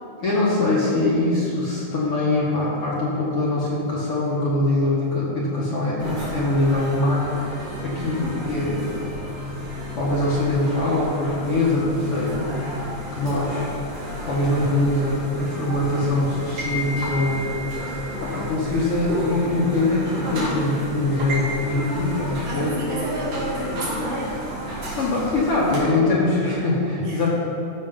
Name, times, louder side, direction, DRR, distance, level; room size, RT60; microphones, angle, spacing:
voice 1, 0.2-7.4 7.8-8.9 10.0-12.9 13.1-13.7 14.3-17.6 18.2-22.7 25.0-27.3, left 2 dB, 55° left, -6 dB, 2.0 m, -23 dB
sound 1, 6.0-25.8, equal, 80° right, 4.1 m, -32 dB
voice 2, 22.4-24.3 27.0-27.3, right 1 dB, 60° right, -7 dB, 4.3 m, -30 dB
13.0 x 6.3 x 5.3 m, 2.6 s
omnidirectional pair, 3.7 m